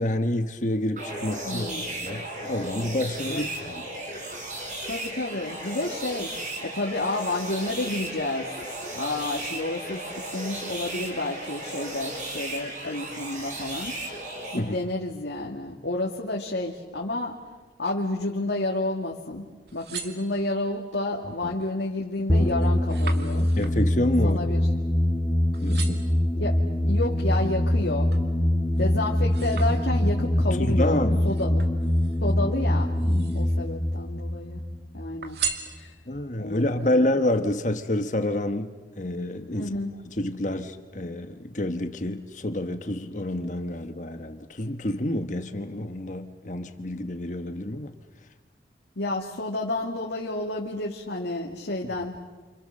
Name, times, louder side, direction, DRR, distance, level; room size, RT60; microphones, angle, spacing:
voice 1, 0.0-1.7 2.0-3.8 14.5-14.8 21.4-21.5 23.6-24.4 25.6-26.1 29.9-30.1 30.6-31.3 33.1-33.4 36.1-39.7 40.2-47.9, left 1 dB, 45° left, 1.3 m, -28 dB
sound 1, 1.0-14.6, right 1 dB, 45° right, 5.5 m, -35 dB
voice 2, 1.4-1.9 3.3-3.5 4.8-8.5 8.9-14.2 14.5-17.4 17.8-23.5 24.2-24.7 26.3-28.1 28.8-31.7 32.2-32.9 33.3-34.6 34.9-35.4 35.7-35.9 36.4-37.0 39.5-39.9 49.0-52.2, left 2 dB, 85° left, 2.3 m, -30 dB
sound 2, 19.5-20.8 21.4-21.8 22.1-25.2 25.5-26.2 26.8-28.3 28.7-30.3 31.2-32.3 32.9-33.7 34.0-34.7 35.2-36.3 36.8-36.9, right 7 dB, 65° right, 2.3 m, -38 dB
sound 3, 22.3-35.5, left 1 dB, ahead, 2.2 m, -24 dB
30.0 x 27.5 x 6.6 m
head